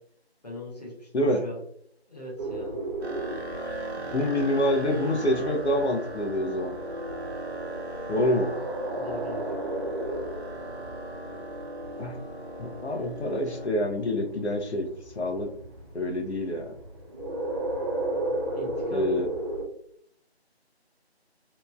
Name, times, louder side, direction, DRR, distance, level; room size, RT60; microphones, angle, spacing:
voice 1, 0.4-1.1 1.4-1.6 2.1-2.8 4.1-4.2 9.0-9.4 18.5-19.1, left 1 dB, 40° left, -3 dB, 0.7 m, -40 dB
sound 1, 2.4-19.6, right 1 dB, 30° right, 0.8 m, -36 dB
sound 2, 3.0-13.7, right 1 dB, 75° right, 0.7 m, -38 dB
voice 2, 4.1-6.8 8.1-8.5 12.0-12.2 12.6-14.9 15.1-15.5 15.9-16.7 18.9-19.3, left 1 dB, 85° left, 4 dB, 0.7 m, -26 dB
2.9 x 2.4 x 2.2 m, 0.66 s
figure-of-eight pair, 165°, 32 cm